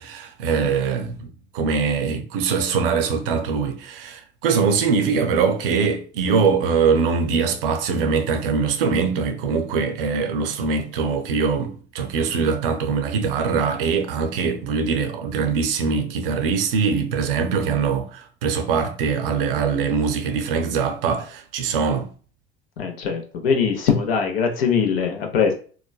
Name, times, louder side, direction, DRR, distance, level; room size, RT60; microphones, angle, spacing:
voice 1, 0.0-22.1, right 5 dB, 70° right, 0.5 m, -22 dB
voice 2, 22.8-25.5, left 6 dB, 75° left, 0.7 m, -21 dB
3.0 x 2.1 x 2.2 m
figure-of-eight pair, 60°, 29 cm